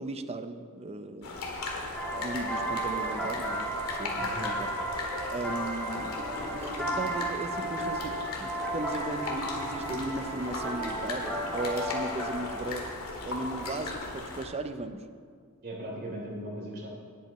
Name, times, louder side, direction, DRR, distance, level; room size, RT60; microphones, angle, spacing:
voice 1, 0.0-1.4 1.7-1.8 2.2-4.7 5.3-6.2 6.6-8.1 8.4-12.9 13.2-15.0, right 2 dB, 30° right, 9 dB, 0.5 m, -37 dB
sound 1, 1.2-14.4, left 2 dB, 75° left, 1.9 m, -37 dB
sound 2, 1.9-12.7, right 1 dB, 5° left, 1.8 m, -34 dB
Wild animals, 6.1-8.6 9.1-11.6, equal, 75° right, 2.2 m, -45 dB
voice 2, 15.6-16.9, right 1 dB, 45° right, -3 dB, 3.3 m, -38 dB
18.5 x 8.6 x 3.1 m, 2.1 s
head